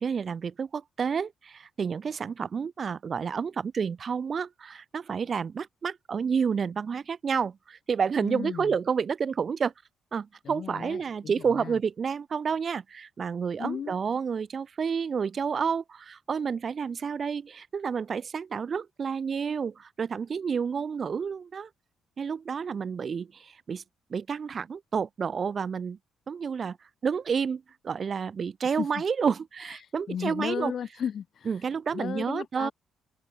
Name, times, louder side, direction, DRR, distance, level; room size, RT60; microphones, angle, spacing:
voice 1, 0.0-9.7 10.1-21.7 22.2-23.8 24.1-26.0 26.3-26.8 27.0-30.7 31.5-32.7, right 6 dB, 45° right, 1.0 m, -30 dB
voice 2, 8.2-8.8 10.4-11.8 13.6-14.0 28.6-29.0 29.8-31.5 31.9-32.7, left 8 dB, 60° left, 2.0 m, -35 dB
cardioid pair, 90°, 0 cm